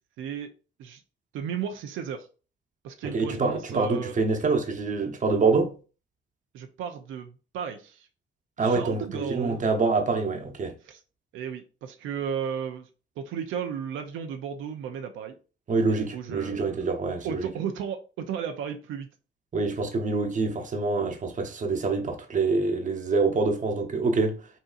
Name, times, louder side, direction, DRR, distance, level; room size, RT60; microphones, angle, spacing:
voice 1, 0.2-0.5 0.8-1.0 1.3-2.3 2.8-4.1 6.5-8.1 8.6-9.6 10.8-11.0 11.3-12.9 13.2-15.4 15.9-16.9 17.2-19.1, right 7 dB, 85° right, 0.5 m, -34 dB
voice 2, 3.1-5.7 8.6-10.7 15.7-17.5 19.5-24.4, right 3 dB, 40° right, 0.9 m, -26 dB
5.4 x 2.7 x 2.4 m
cardioid pair, 90°, 20 cm